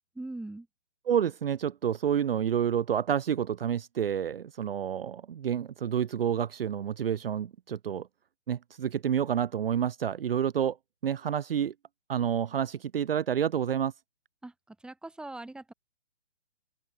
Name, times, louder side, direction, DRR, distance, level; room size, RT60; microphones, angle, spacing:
voice 1, 0.2-0.7 14.4-15.7, right 2 dB, ahead, 6.8 m, -41 dB
voice 2, 1.1-8.1 8.5-10.8 11.0-11.7 12.1-13.9, right 8 dB, 55° right, 1.2 m, -29 dB
open air
hypercardioid pair, 160°, 35 cm